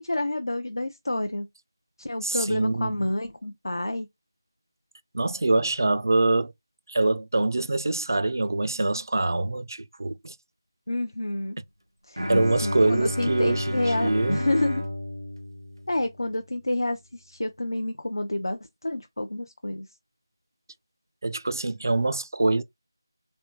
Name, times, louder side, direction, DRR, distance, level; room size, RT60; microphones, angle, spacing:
voice 1, 0.0-1.5 2.0-4.1 10.9-11.6 12.1-12.2 12.6-14.8 15.9-19.9, left 1 dB, 70° left, 0.4 m, -29 dB
voice 2, 2.2-2.9 5.1-6.5 6.9-10.4 12.3-14.4 21.2-22.6, right 2 dB, 50° right, 0.3 m, -24 dB
Bowed string instrument, 12.2-16.3, left 1 dB, 90° right, 0.7 m, -30 dB
3.2 x 2.1 x 2.9 m
figure-of-eight pair, 165°, 2 cm